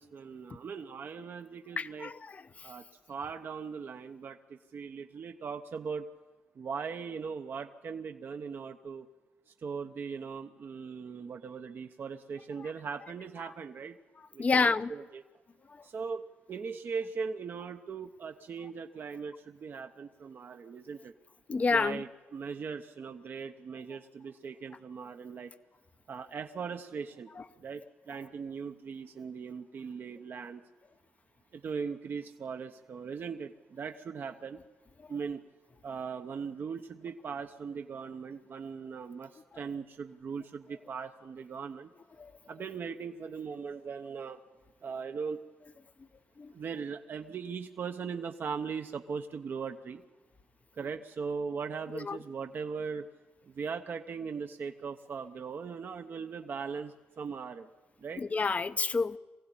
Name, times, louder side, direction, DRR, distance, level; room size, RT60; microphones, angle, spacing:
voice 1, 0.0-2.1 2.6-6.1 6.6-9.1 9.5-14.0 14.3-15.2 15.8-21.1 21.7-25.5 26.1-27.3 27.6-30.6 31.5-34.6 35.1-35.4 35.8-41.9 42.5-44.4 44.8-45.4 46.5-50.0 50.7-53.1 53.5-57.7 58.0-58.2, right 5 dB, 50° right, 6 dB, 0.9 m, -39 dB
voice 2, 1.8-2.7 12.6-12.7 14.4-14.9 21.5-22.0 27.4-27.5 42.2-42.3 46.4-46.5 52.0-52.2 58.2-59.2, left 4 dB, 30° left, 12 dB, 0.8 m, -29 dB
23.5 x 15.5 x 9.0 m, 1.2 s
cardioid pair, 85°, 5 cm